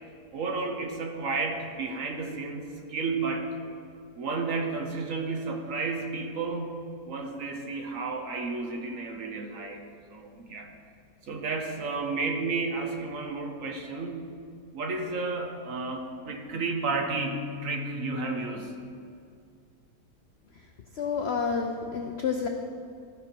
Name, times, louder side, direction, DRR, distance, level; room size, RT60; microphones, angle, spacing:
voice 1, 0.3-3.5 4.1-9.8 10.1-10.7 11.3-14.3 14.7-18.7, right 3 dB, 55° right, 3 dB, 1.1 m, -32 dB
voice 2, 20.9-22.5, left 5 dB, 75° left, 3 dB, 0.6 m, -29 dB
14.0 x 5.7 x 4.4 m, 2.3 s
omnidirectional pair, 1.8 m